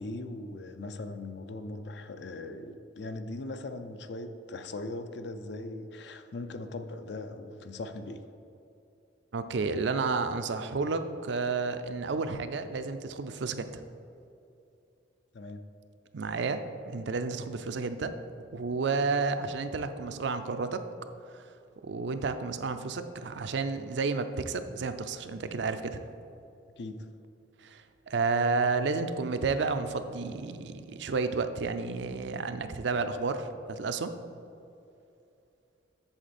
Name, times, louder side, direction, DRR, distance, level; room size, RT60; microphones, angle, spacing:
voice 1, 0.0-8.3 15.3-15.7 26.8-27.1, left 2 dB, 60° left, 9 dB, 0.5 m, -39 dB
voice 2, 9.3-13.8 16.1-16.6 16.9-18.1 18.5-20.8 21.3-21.4 21.8-26.0 27.6-34.1, right 4 dB, 65° right, 9 dB, 0.4 m, -31 dB
7.8 x 6.8 x 4.2 m, 2.7 s
head